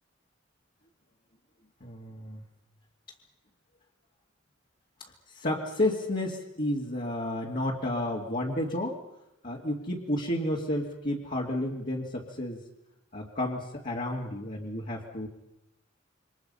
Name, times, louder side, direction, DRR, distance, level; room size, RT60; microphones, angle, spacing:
voice 1, 1.8-2.4 5.3-9.0 9.4-12.6 13.1-15.3, left 1 dB, 45° left, -4 dB, 2.6 m, -31 dB
28.5 x 24.5 x 5.7 m, 0.87 s
head